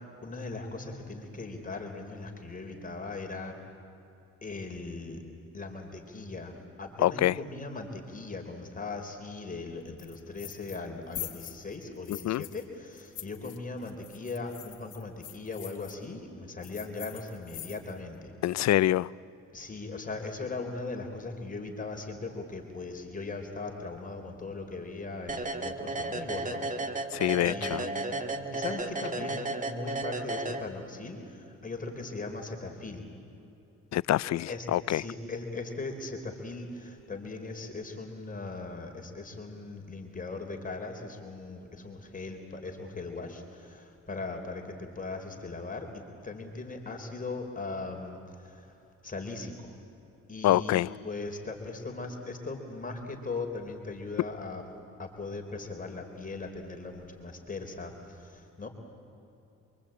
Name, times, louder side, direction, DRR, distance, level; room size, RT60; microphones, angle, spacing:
voice 1, 0.2-3.6 4.4-5.2 5.5-18.3 19.5-26.6 27.4-33.0 34.5-48.7 49.0-49.7 50.3-54.6 55.0-58.7, left 3 dB, 25° left, 3.8 m, -39 dB
voice 2, 7.0-7.4 12.1-12.4 18.4-19.1 27.1-27.8 33.9-35.0 50.4-50.9, left 14 dB, 65° left, 0.5 m, -26 dB
sound 1, 10.0-10.9 11.1-12.6 12.9-15.9 16.6-18.1, left 13 dB, 80° left, 2.2 m, -44 dB
sound 2, 25.3-31.1, right 2 dB, 25° right, 2.0 m, -34 dB
27.5 x 24.0 x 8.8 m
cardioid pair, 90°, 30 cm